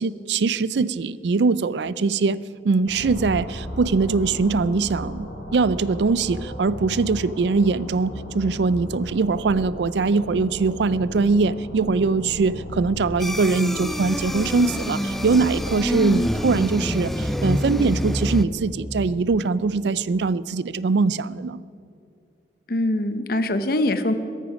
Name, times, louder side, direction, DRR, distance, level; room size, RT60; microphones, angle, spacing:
voice 1, 0.0-2.4 2.6-21.6, right 4 dB, 75° right, 18 dB, 0.4 m, -22 dB
sound 1, 2.9-19.1, left 1 dB, 75° left, 3.1 m, -34 dB
sound 2, 13.2-18.4, equal, ahead, 0.4 m, -27 dB
voice 2, 16.0-16.3 22.7-24.1, left 1 dB, 55° left, 10 dB, 0.9 m, -23 dB
17.0 x 13.5 x 5.2 m, 2.4 s
head